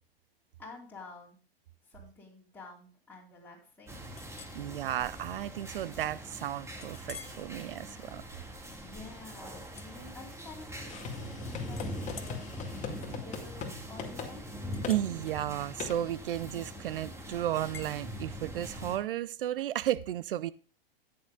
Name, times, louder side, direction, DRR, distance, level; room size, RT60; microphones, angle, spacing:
voice 1, 0.6-1.4 1.9-4.0 8.7-14.5, left 3 dB, 5° left, 4.2 m, -50 dB
sound 1, 3.9-19.0, equal, 10° right, 1.9 m, -43 dB
Chink clink, 4.1-4.6 5.1-5.3 5.8-5.9 6.8-7.4 8.0-8.2 9.7-10.7 11.0-11.4 11.7-16.8 17.7-17.9, left 6 dB, 90° left, 1.1 m, -51 dB
voice 2, 4.5-8.2 14.9-20.5, right 12 dB, 70° right, 0.6 m, -33 dB
sound 2, 10.8-13.7 14.0-14.3 14.8-15.0 15.8-16.0, left 6 dB, 25° left, 2.1 m, -40 dB
14.0 x 9.5 x 2.4 m
hypercardioid pair, 100°, 29 cm